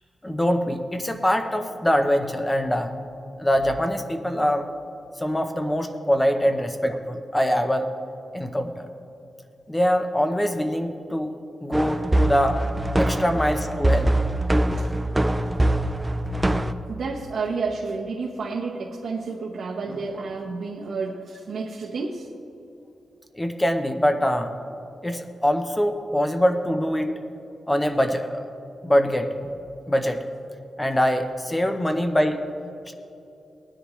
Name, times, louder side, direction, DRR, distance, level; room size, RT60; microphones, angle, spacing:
voice 1, 0.2-2.9 3.4-4.7 5.2-7.9 8.3-8.9 9.7-11.3 11.6-12.6 13.0-14.1 23.3-24.5 25.0-27.1 27.7-28.4 28.8-29.5 29.9-30.2 30.8-32.4, equal, 10° left, 7 dB, 0.7 m, -23 dB
sound 1, 11.7-16.7, right 1 dB, 15° right, 0.4 m, -23 dB
voice 2, 16.9-22.3, right 4 dB, 75° right, -4 dB, 1.0 m, -30 dB
19.0 x 10.0 x 3.1 m, 2.8 s
wide cardioid pair, 135°, 0 cm